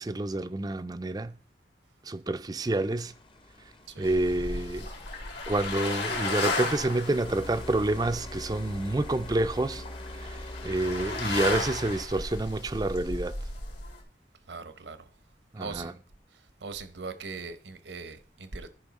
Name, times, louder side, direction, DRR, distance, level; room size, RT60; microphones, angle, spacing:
voice 1, 0.0-1.4 2.1-3.1 4.0-4.9 5.5-9.8 10.2-10.3 10.6-13.3 15.5-15.9, right 2 dB, 20° right, 0.4 m, -28 dB
sound 1, 2.6-12.0, left 1 dB, 30° left, 0.7 m, -44 dB
sound 2, 4.0-14.0, left 3 dB, 75° left, 2.7 m, -35 dB
voice 2, 14.5-15.0 15.6-16.0 16.6-18.7, right 4 dB, 85° right, 1.0 m, -40 dB
13.5 x 5.5 x 4.1 m
head